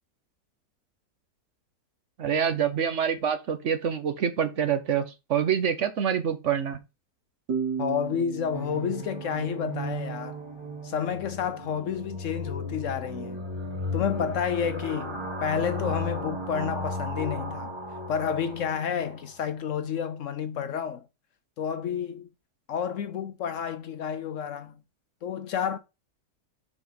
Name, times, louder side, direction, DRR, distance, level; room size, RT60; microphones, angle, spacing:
voice 1, 2.2-6.8, right 8 dB, 55° right, 1.1 m, -26 dB
sound 1, 7.5-10.9, right 6 dB, 85° right, 1.6 m, -35 dB
voice 2, 7.8-10.4 10.8-13.4 13.9-17.7 18.1-21.0 21.6-22.3 22.7-24.8 25.2-25.8, left 7 dB, 65° left, 0.9 m, -30 dB
sound 2, 8.5-19.3, left 1 dB, 20° right, 1.2 m, -35 dB
7.0 x 4.9 x 4.0 m
omnidirectional pair, 1.6 m